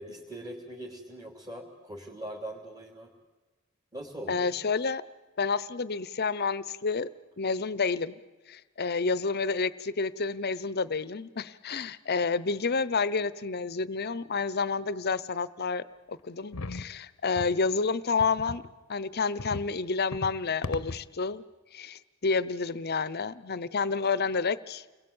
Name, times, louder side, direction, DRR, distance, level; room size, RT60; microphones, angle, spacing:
voice 1, 0.0-3.1 3.9-4.5, right 1 dB, 20° right, -2 dB, 3.3 m, -41 dB
voice 2, 4.3-5.0 5.4-7.1 7.4-8.2 8.5-18.6 18.9-21.4 21.7-24.8, left 4 dB, 50° left, 17 dB, 0.9 m, -29 dB
sound 1, 16.5-16.9 17.4-17.6 18.2-18.7 19.4-19.7 20.1-20.4 20.6-21.1, left 3 dB, 90° left, 1.0 m, -37 dB
29.5 x 21.5 x 8.8 m, 1.2 s
head